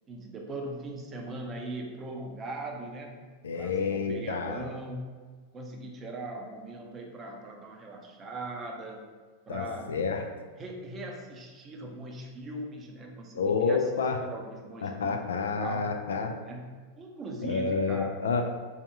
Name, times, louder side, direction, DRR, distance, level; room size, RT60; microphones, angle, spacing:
voice 1, 0.1-3.2 3.5-5.2 5.5-9.0 9.5-9.9 10.6-13.9 14.2-15.2 15.6-15.9 16.5-16.7 17.0-18.2, right 2 dB, 25° right, 1 dB, 0.6 m, -40 dB
voice 2, 3.4-4.6 9.5-10.2 13.3-14.2 14.8-16.3 17.4-18.4, left 5 dB, 65° left, 3 dB, 0.4 m, -29 dB
3.4 x 2.7 x 3.5 m, 1.4 s
figure-of-eight pair, 90°, 0 cm